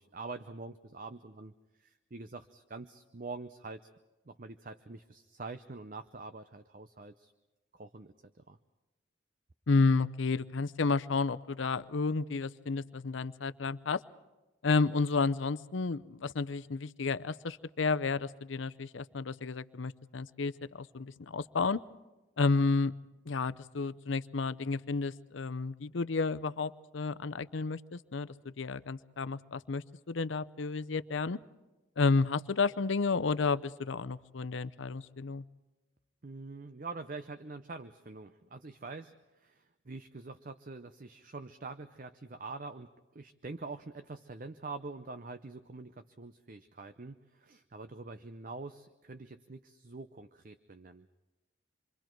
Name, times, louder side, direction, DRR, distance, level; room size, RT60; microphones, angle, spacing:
voice 1, 0.0-1.5 1.8-3.9 4.3-7.3 7.7-8.6 36.2-51.1, right 3 dB, 45° right, 10 dB, 0.6 m, -45 dB
voice 2, 9.7-14.0 14.6-21.8 22.4-22.9 23.3-31.4 32.0-35.4, left 4 dB, 75° left, 15 dB, 0.6 m, -31 dB
27.5 x 24.0 x 4.6 m, 1.1 s
head